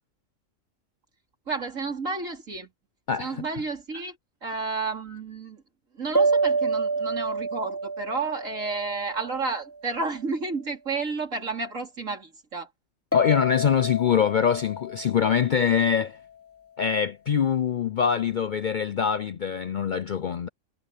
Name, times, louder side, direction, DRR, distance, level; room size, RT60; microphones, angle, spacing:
voice 1, 1.5-2.7 3.2-4.2 4.4-5.6 5.9-12.7, right 4 dB, 85° right, 3.7 m, -31 dB
sound 1, 6.1-9.7 13.1-16.1, right 2 dB, 10° left, 2.8 m, -28 dB
voice 2, 13.1-16.2 16.8-20.5, left 7 dB, 60° left, 0.5 m, -24 dB
omnidirectional pair, 1.3 m